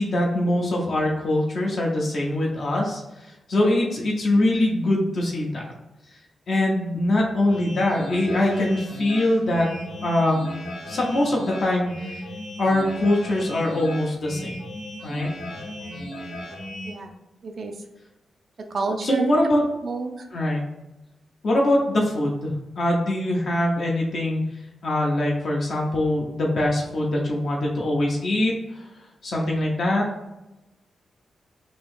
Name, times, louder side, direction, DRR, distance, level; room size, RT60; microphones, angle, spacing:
voice 1, 0.0-3.0 3.5-5.6 6.5-9.7 10.0-10.5 10.9-12.2 12.6-14.5 15.0-15.3 19.0-19.6 20.3-20.6 21.4-24.4 24.8-28.8 29.2-30.1, left 1 dB, 50° left, -2 dB, 0.6 m, -23 dB
sound 1, 7.5-16.9, equal, 75° left, 0.9 m, -36 dB
voice 2, 17.4-17.8 18.6-19.4 19.8-20.3, right 4 dB, 40° right, 4 dB, 0.3 m, -29 dB
2.9 x 2.6 x 3.4 m, 0.96 s
wide cardioid pair, 165°, 0 cm